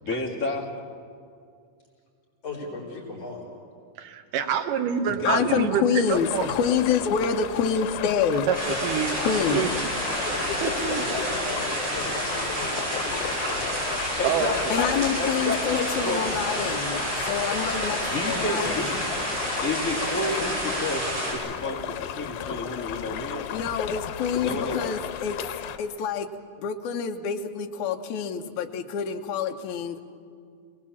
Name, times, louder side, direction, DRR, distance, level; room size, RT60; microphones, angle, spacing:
voice 1, 0.0-0.7 5.1-5.6 14.2-16.2 18.1-18.9 19.6-23.5 24.3-24.8, left 2 dB, 25° left, -4 dB, 3.1 m, -30 dB
voice 2, 2.4-3.5 10.2-13.7 24.5-24.7, left 3 dB, 45° left, -3 dB, 5.2 m, -37 dB
voice 3, 4.0-6.5 8.5-9.2 9.5-9.9 10.6-11.1 12.6-12.7 13.4-13.8 14.2-14.8, right 8 dB, 75° right, 7 dB, 2.6 m, -27 dB
voice 4, 5.2-8.5 9.2-9.6 14.7-18.9 23.5-25.4 25.8-26.3 26.6-30.0, left 7 dB, 65° left, 5 dB, 2.3 m, -27 dB
sound 1, 6.1-25.8, left 10 dB, 90° left, 2.7 m, -35 dB
sound 2, 8.5-21.3, right 1 dB, 40° right, 8.2 m, -29 dB
28.0 x 19.5 x 7.3 m, 2.3 s
omnidirectional pair, 4.0 m